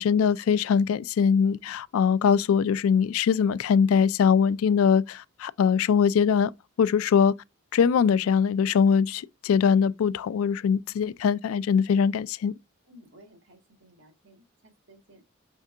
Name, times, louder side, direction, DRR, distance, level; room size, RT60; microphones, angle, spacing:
voice 1, 0.0-6.5 6.8-7.3 7.7-12.5, left 6 dB, 85° left, 0.3 m, -22 dB
voice 2, 12.9-15.2, equal, 65° right, 1.4 m, -55 dB
5.4 x 3.6 x 2.4 m
head